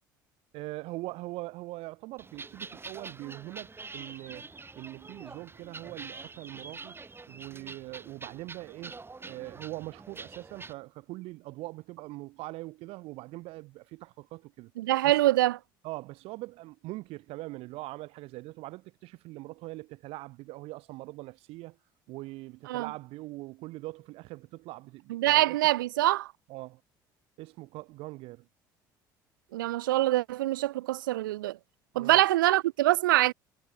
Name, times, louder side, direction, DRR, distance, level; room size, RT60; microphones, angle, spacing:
voice 1, 0.5-7.0 7.3-14.7 15.0-15.1 15.8-21.8 22.1-25.6 26.5-26.8 27.4-28.5 31.9-32.2, right 20 dB, 65° right, 4.3 m, -42 dB
sound 1, 2.2-10.7, right 3 dB, 20° right, 6.7 m, -46 dB
voice 2, 14.8-15.6 22.7-22.9 25.1-26.3 29.5-31.6 31.9-33.3, right 16 dB, 85° right, 1.5 m, -24 dB
hypercardioid pair, 65°, 11 cm